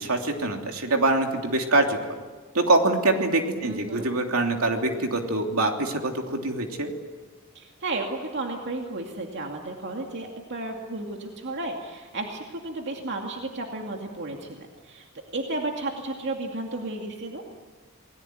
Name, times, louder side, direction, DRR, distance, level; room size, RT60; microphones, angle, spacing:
voice 1, 0.0-2.0 2.5-6.9, right 2 dB, 70° right, 3 dB, 3.1 m, -24 dB
voice 2, 3.6-4.1 7.5-15.1 15.3-17.4, right 2 dB, 55° right, 1 dB, 2.5 m, -33 dB
28.5 x 19.5 x 9.3 m, 1.4 s
head